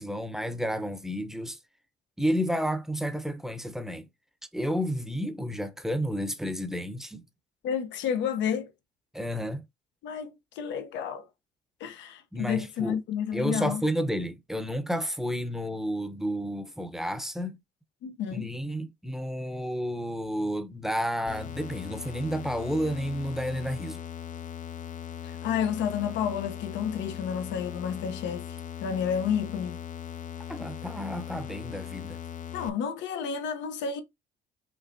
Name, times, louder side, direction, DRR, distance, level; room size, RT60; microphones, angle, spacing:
voice 1, 0.0-1.6 2.2-4.1 4.5-7.2 9.1-9.6 12.3-13.0 13.3-17.6 18.3-24.0 30.5-32.2, equal, ahead, 0.8 m, -31 dB
voice 2, 7.6-8.7 10.0-11.3 11.8-13.8 18.0-18.5 25.2-28.6 28.8-29.8 32.5-34.0, left 8 dB, 80° left, 0.9 m, -30 dB
sound 1, 21.3-32.7, left 9 dB, 45° left, 0.5 m, -39 dB
5.7 x 3.2 x 2.7 m
cardioid pair, 95°, 18 cm